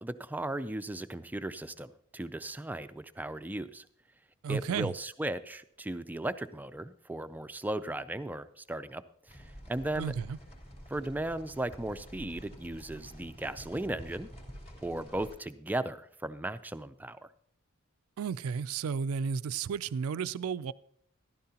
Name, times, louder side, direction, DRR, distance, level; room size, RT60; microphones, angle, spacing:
voice 1, 0.0-3.9 4.5-9.0 9.3-10.1 10.9-14.3 14.8-17.3, right 1 dB, 10° right, 0.4 m, -36 dB
voice 2, 4.4-4.9 10.0-10.4 18.2-20.7, right 6 dB, 80° right, 0.4 m, -33 dB
sound 1, 9.3-15.4, equal, 30° left, 3.4 m, -49 dB
14.0 x 12.0 x 2.9 m
head